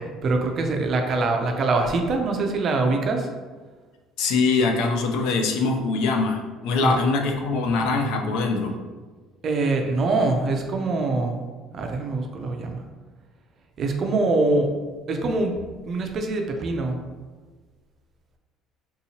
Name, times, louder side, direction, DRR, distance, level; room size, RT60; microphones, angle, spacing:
voice 1, 0.2-3.3 6.8-6.9 9.4-11.4 11.7-12.8 13.8-14.7 15.1-15.5 15.9-17.0, right 3 dB, 35° right, 4 dB, 0.4 m, -24 dB
voice 2, 4.2-8.7, left 4 dB, 75° left, 3 dB, 0.5 m, -23 dB
3.6 x 2.8 x 2.7 m, 1.4 s
cardioid pair, 165°, 0 cm